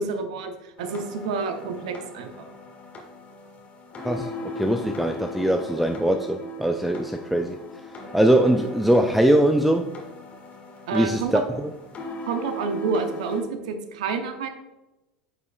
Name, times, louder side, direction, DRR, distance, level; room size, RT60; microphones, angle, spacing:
voice 1, 0.0-2.3 10.9-11.4 12.3-14.5, right 4 dB, 70° right, 7 dB, 0.8 m, -29 dB
sound 1, 0.8-13.4, left 1 dB, 40° left, 1.7 m, -39 dB
voice 2, 4.6-7.6 8.1-9.9 10.9-11.4, right 1 dB, 5° right, 5 dB, 0.4 m, -21 dB
9.1 x 5.4 x 2.3 m, 0.99 s
hypercardioid pair, 75°, 4 cm